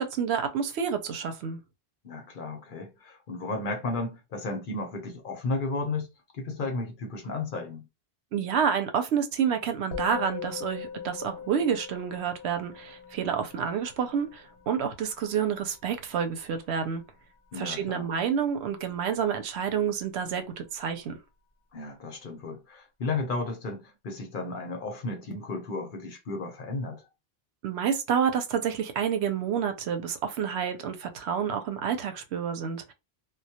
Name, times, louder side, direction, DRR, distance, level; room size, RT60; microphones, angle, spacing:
voice 1, 0.0-1.6 8.3-17.0 17.6-21.2 27.6-32.9, right 7 dB, 90° right, 0.9 m, -29 dB
voice 2, 2.0-7.9 17.5-18.1 21.7-27.0, left 3 dB, 55° left, 0.8 m, -34 dB
Musical instrument, 9.9-19.4, left 7 dB, 85° left, 1.0 m, -43 dB
2.2 x 2.1 x 2.7 m
omnidirectional pair, 1.1 m